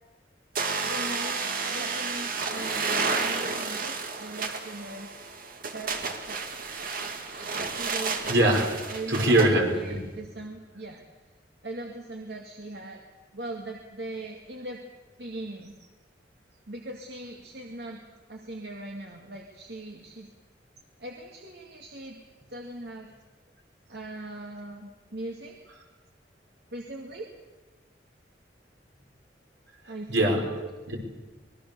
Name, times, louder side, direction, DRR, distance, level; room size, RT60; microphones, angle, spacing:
sound 1, 0.6-9.5, right 4 dB, 50° right, 2.2 m, -31 dB
voice 1, 0.8-5.1 5.7-5.9 6.2-7.0 7.2-8.2 8.9-9.4 9.7-11.0 11.6-13.0 13.3-14.8 15.2-15.7 16.7-18.0 18.3-20.3 21.0-22.2 22.5-23.1 23.9-25.6 26.7-27.3 29.9-30.5, right 2 dB, 65° right, 1 dB, 2.3 m, -40 dB
voice 2, 8.3-8.7 9.1-10.0 29.9-31.0, right 1 dB, 85° right, 1 dB, 5.3 m, -23 dB
25.0 x 20.5 x 7.0 m, 1.2 s
head